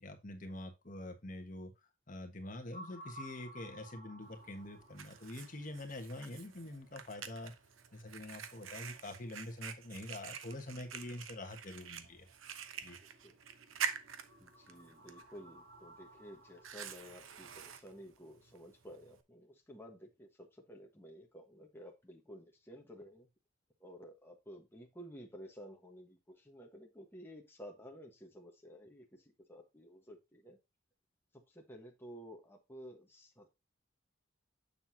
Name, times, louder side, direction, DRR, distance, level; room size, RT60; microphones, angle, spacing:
voice 1, 0.0-1.7 2.1-7.5 7.9-12.3 12.8-13.0, left 1 dB, 40° left, 5 dB, 1.4 m, -45 dB
sound 1, 2.7-17.0, right 1 dB, 55° right, 3.2 m, -58 dB
Fire, 4.2-19.2, right 7 dB, 85° right, 0.9 m, -47 dB
voice 2, 13.0-13.3 14.4-23.3 23.8-30.6 31.3-33.5, equal, 10° left, 1 dB, 1.3 m, -53 dB
7.6 x 6.9 x 2.8 m, 0.24 s
head